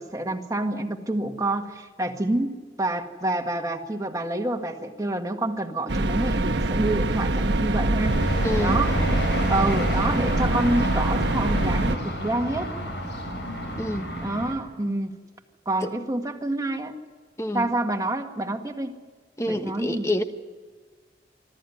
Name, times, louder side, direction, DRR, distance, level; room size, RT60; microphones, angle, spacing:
voice 1, 0.0-8.2 8.6-9.0 9.5-12.7 14.2-15.1 15.6-16.9 17.5-19.0 19.5-20.1, right 2 dB, 20° right, 4 dB, 1.7 m, -27 dB
sound 1, 5.9-12.0, right 2 dB, 85° right, 1.2 m, -24 dB
sound 2, 8.0-14.5, equal, 85° left, 5.4 m, -30 dB
voice 2, 8.4-8.8 13.8-14.2 15.8-15.9 17.4-17.7 19.4-20.2, left 1 dB, 15° left, 7 dB, 1.3 m, -27 dB
25.5 x 14.0 x 9.8 m, 1.5 s
head